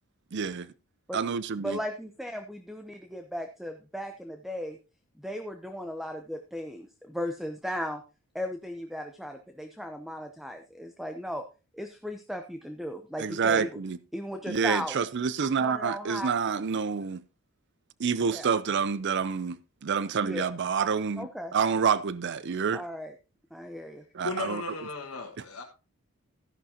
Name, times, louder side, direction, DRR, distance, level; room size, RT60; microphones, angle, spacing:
voice 1, 0.3-0.7 1.1-1.8 13.2-14.0 14.5-17.2 18.0-22.8 24.1-24.6, right 6 dB, 55° right, 0.5 m, -28 dB
voice 2, 1.6-4.8 5.2-8.0 8.3-11.4 11.7-13.8 14.1-15.1 15.6-16.3 18.2-18.5 20.2-20.5 21.2-21.5 22.7-23.1 23.5-24.0, equal, ahead, 0.7 m, -36 dB
voice 3, 24.2-25.6, left 4 dB, 70° left, 1.6 m, -36 dB
14.0 x 10.5 x 2.8 m
head